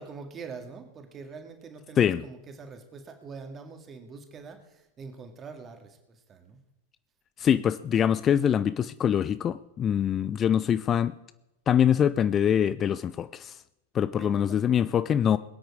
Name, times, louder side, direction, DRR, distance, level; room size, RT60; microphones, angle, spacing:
voice 1, 0.0-6.6 7.4-7.7 14.2-14.7, right 4 dB, 25° right, 2.2 m, -44 dB
voice 2, 7.4-11.1 11.7-13.6 13.9-15.4, left 9 dB, 25° left, 0.4 m, -24 dB
21.5 x 9.2 x 4.9 m
figure-of-eight pair, 90°, 0 cm